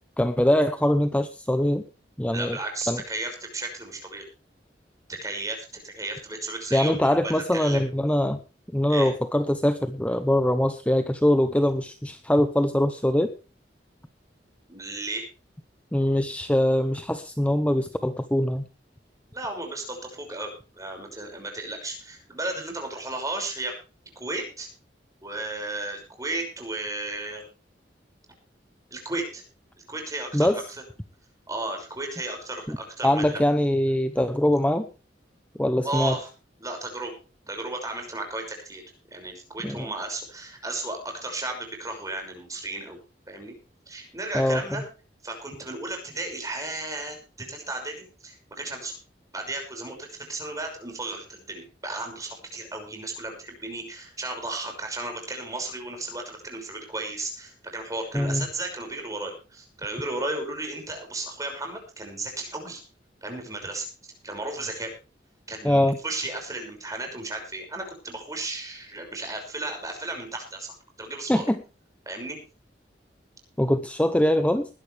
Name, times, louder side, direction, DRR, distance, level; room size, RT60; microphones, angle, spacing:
voice 1, 0.2-1.8 2.2-2.6 2.9-3.0 6.7-8.4 8.7-13.3 15.9-18.7 30.3-30.6 32.7-32.8 33.0-34.9 35.6-36.2 39.6-39.9 44.3-44.6 58.1-58.5 65.6-66.0 71.3-71.6 73.6-74.7, left 1 dB, 10° left, 9 dB, 0.8 m, -23 dB
voice 2, 2.3-4.2 5.1-7.9 8.9-9.1 14.7-15.2 19.3-23.7 24.2-24.7 25.2-27.4 28.9-29.4 29.9-30.6 31.5-33.4 35.8-36.3 36.6-37.1 37.5-38.8 39.1-43.0 43.3-43.5 43.9-44.8 45.2-48.9 49.3-62.8 63.2-63.9 64.2-64.9 65.5-71.5 72.1-72.4, right 2 dB, 20° right, 3 dB, 6.0 m, -34 dB
20.5 x 11.5 x 3.4 m, 0.34 s
head